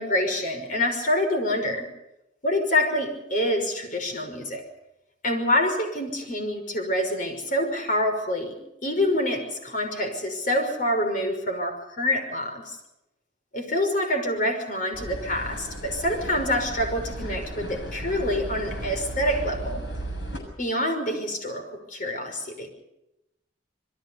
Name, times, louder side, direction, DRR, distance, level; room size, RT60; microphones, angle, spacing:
voice 1, 0.0-1.9 2.4-4.6 5.2-12.8 13.5-19.8 20.6-22.7, left 1 dB, 45° left, 5 dB, 5.7 m, -26 dB
sound 1, 14.9-20.4, right 1 dB, 75° left, 7.3 m, -35 dB
28.0 x 22.5 x 5.4 m, 0.89 s
head